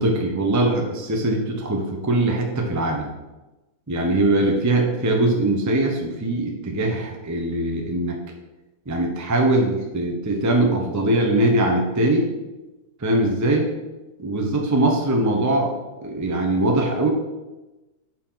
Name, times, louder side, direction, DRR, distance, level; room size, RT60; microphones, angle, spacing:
voice 1, 0.0-3.1 3.9-8.2 8.9-12.3 13.0-13.7 14.2-15.7 16.0-17.1, right 1 dB, 15° right, 1 dB, 0.7 m, -21 dB
5.6 x 4.6 x 5.7 m, 1.1 s
omnidirectional pair, 1.7 m